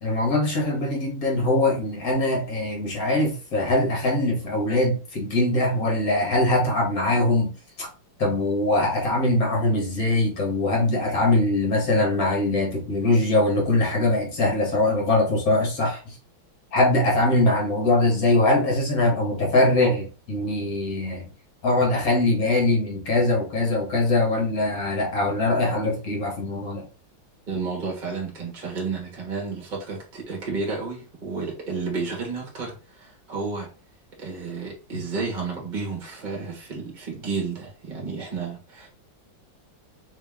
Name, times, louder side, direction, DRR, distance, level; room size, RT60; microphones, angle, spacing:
voice 1, 0.0-7.9 8.2-16.2 16.7-21.3 21.6-26.8, left 2 dB, 50° left, 1.5 m, -22 dB
voice 2, 27.5-33.7 34.2-38.9, right 4 dB, 30° right, 1.2 m, -31 dB
3.3 x 2.9 x 3.4 m
omnidirectional pair, 2.1 m